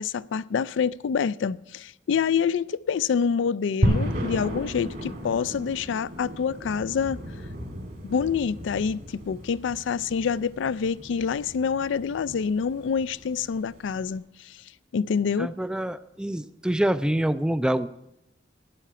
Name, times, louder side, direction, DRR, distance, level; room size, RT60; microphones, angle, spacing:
voice 1, 0.0-7.2 8.0-14.6 14.9-15.5, left 6 dB, 80° left, 0.4 m, -27 dB
sound 1, 3.8-14.1, equal, 55° right, 2.4 m, -33 dB
voice 2, 15.4-17.9, right 1 dB, 5° right, 0.3 m, -26 dB
12.0 x 10.0 x 5.7 m
head